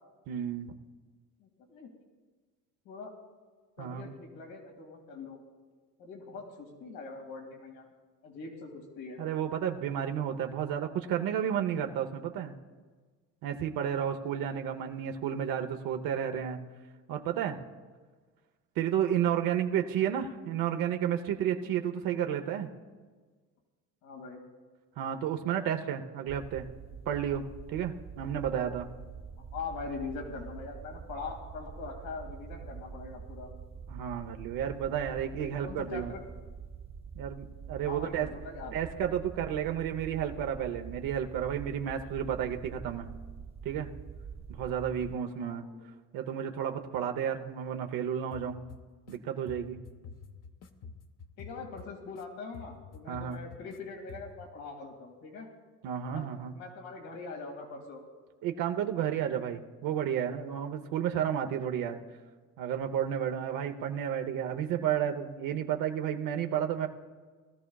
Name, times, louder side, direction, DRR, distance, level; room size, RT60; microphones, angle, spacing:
voice 1, 0.3-0.8 3.8-4.1 9.2-12.6 13.4-16.6 17.1-17.6 18.8-22.7 25.0-26.7 27.1-27.4 27.7-28.9 33.9-36.1 37.1-38.3 38.7-43.1 43.6-43.9 44.5-45.6 46.1-48.6 49.1-49.8 53.1-53.4 55.8-56.5 58.4-62.0 62.6-66.9, right 9 dB, 85° right, 5 dB, 0.9 m, -32 dB
voice 2, 1.4-1.9 2.9-3.1 3.8-5.4 6.0-7.9 8.2-9.2 24.0-24.4 28.5-28.7 29.5-33.5 35.4-36.2 37.9-38.7 45.4-45.9 51.4-55.5 56.1-58.0, left 4 dB, 90° left, 2 dB, 2.3 m, -42 dB
sound 1, 26.3-45.2, right 6 dB, 20° right, 0.3 m, -45 dB
sound 2, 48.3-49.2 49.5-52.2 52.5-53.8 54.1-54.5, left 5 dB, 50° left, 1.0 m, -48 dB
20.0 x 13.5 x 2.3 m, 1.4 s
cardioid pair, 120°, 33 cm